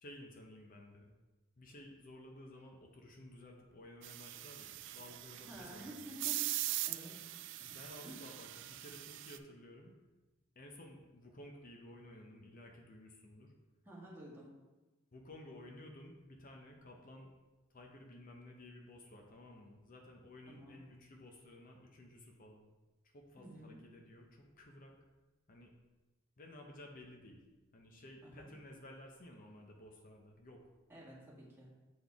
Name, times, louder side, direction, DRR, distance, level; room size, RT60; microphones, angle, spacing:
voice 1, 0.0-1.1 1.6-6.1 7.6-9.9 10.6-13.5 15.1-17.3 17.7-22.7 23.1-25.0 25.5-25.7 26.4-27.4 27.7-30.6, left 1 dB, 45° left, 2 dB, 0.7 m, -54 dB
sound 1, 4.0-9.4, right 15 dB, 65° right, 0.3 m, -42 dB
voice 2, 5.5-6.4 6.8-7.1 8.0-8.3 13.9-14.5 20.5-20.8 23.4-23.8 28.2-28.5 30.9-31.7, equal, 10° right, -6 dB, 1.7 m, -51 dB
7.1 x 4.0 x 3.5 m, 1.1 s
head